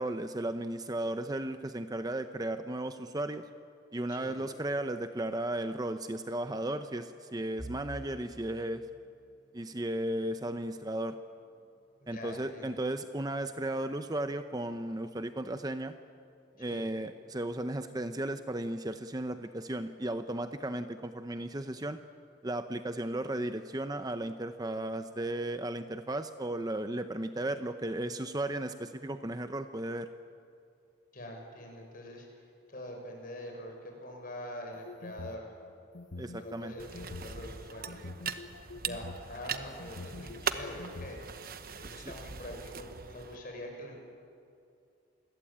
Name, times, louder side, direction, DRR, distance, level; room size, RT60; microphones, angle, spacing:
voice 1, 0.0-3.4 3.9-8.8 9.5-11.2 12.1-15.9 16.6-22.0 22.4-30.1 36.2-36.7, right 1 dB, 20° right, 9 dB, 0.7 m, -35 dB
voice 2, 4.1-4.4 12.0-12.8 16.6-16.9 31.1-35.5 36.4-38.0 38.8-41.2 41.8-44.1, left 1 dB, 45° left, 2 dB, 6.3 m, -44 dB
sound 1, 7.6-19.4 19.8-20.1 20.5-20.6 21.5-22.0, right 1 dB, ahead, 7.2 m, -55 dB
sound 2, 34.7-35.4 35.9-37.3 37.9-39.2 39.8-41.1, left 2 dB, 75° left, 1.0 m, -45 dB
sound 3, 36.8-43.4, right 6 dB, 50° right, 1.1 m, -40 dB
27.5 x 21.5 x 8.9 m, 2.5 s
head